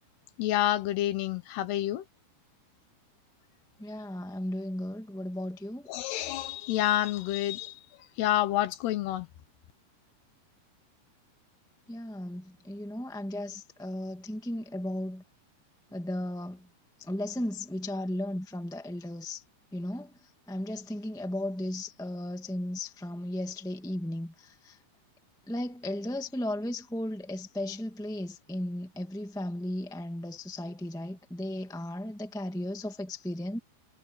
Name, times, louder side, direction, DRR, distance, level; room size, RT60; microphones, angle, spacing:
voice 1, 0.4-2.0 5.9-7.7 8.2-9.3, left 14 dB, 90° left, 3.3 m, -28 dB
voice 2, 3.8-5.9 11.9-15.2 15.9-16.6 17.0-19.4 19.7-20.1 20.5-24.8 25.5-33.6, left 1 dB, 5° left, 0.7 m, -35 dB
omnidirectional pair, 4.6 m